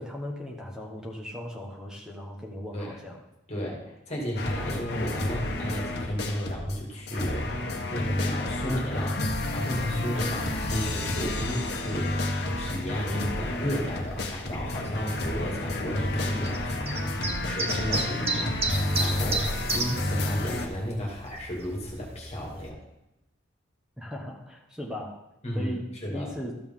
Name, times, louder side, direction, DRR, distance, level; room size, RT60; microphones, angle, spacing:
voice 1, 0.0-3.2 24.0-25.2 25.5-26.6, equal, 5° right, 0 dB, 1.2 m, -38 dB
voice 2, 3.5-7.6 7.9-12.3 12.6-22.8 25.4-25.7 26.0-26.3, equal, 35° left, -2 dB, 2.4 m, -33 dB
sound 1, 4.4-6.8 7.1-20.7, left 1 dB, 55° left, 1.2 m, -30 dB
sound 2, 8.8-22.7, right 3 dB, 30° right, 1.0 m, -37 dB
13.0 x 7.0 x 3.7 m, 0.91 s
head